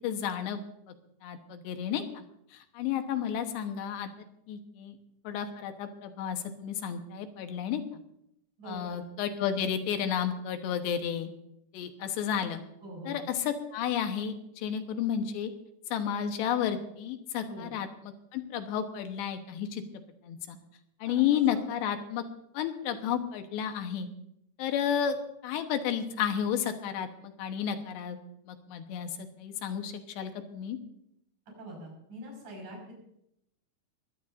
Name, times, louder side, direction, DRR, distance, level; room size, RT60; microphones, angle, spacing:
voice 1, 0.0-0.6 1.2-2.2 2.5-4.1 4.5-5.0 5.2-8.0 8.7-11.3 11.7-12.6 13.0-15.5 15.9-19.8 20.2-20.6 21.0-22.2 22.5-24.1 24.6-25.2 25.4-28.2 28.5-30.8, left 9 dB, 90° left, 7 dB, 3.4 m, -32 dB
voice 2, 8.6-9.0 12.8-13.2 17.5-17.7 21.1-21.2 21.5-21.6 31.6-33.0, right 1 dB, 50° right, -1 dB, 7.0 m, -44 dB
22.5 x 15.5 x 2.7 m, 0.79 s
omnidirectional pair, 4.9 m